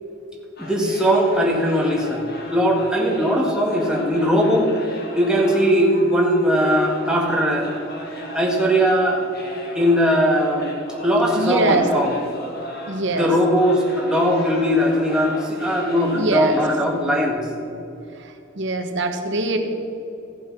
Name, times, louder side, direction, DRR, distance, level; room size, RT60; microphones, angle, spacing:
sound 1, 0.6-17.3, left 1 dB, 50° left, 2.0 m, -37 dB
voice 1, 0.6-4.7 5.1-7.7 8.3-9.2 9.7-10.7 11.0-12.1 13.2-17.5, equal, 5° right, -1 dB, 1.7 m, -19 dB
voice 2, 11.4-11.9 12.9-13.3 16.1-16.6 18.2-19.6, right 2 dB, 60° right, 6 dB, 1.2 m, -23 dB
15.0 x 7.7 x 6.0 m, 2.8 s
head